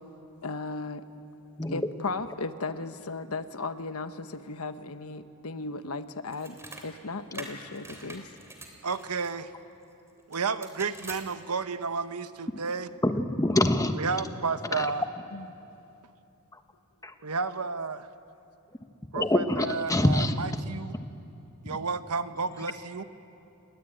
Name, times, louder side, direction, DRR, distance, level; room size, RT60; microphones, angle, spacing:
voice 1, 0.4-1.0 1.7-6.6 6.8-8.3 15.3-15.5, left 3 dB, 75° left, 10 dB, 1.1 m, -35 dB
sound 1, 6.3-6.9 7.3-9.3 10.3-11.2, right 2 dB, 10° right, 3.2 m, -44 dB
voice 2, 8.8-9.5 10.3-12.9 14.0-15.0 17.2-18.1 19.1-21.0 21.6-23.0, right 4 dB, 90° right, 11 dB, 1.0 m, -32 dB
voice 3, 13.0-13.9 14.7-14.9 17.0-17.1 19.1-20.3 21.7-21.8, left 1 dB, 15° left, 7 dB, 1.2 m, -25 dB
29.5 x 20.0 x 9.0 m, 2.8 s
head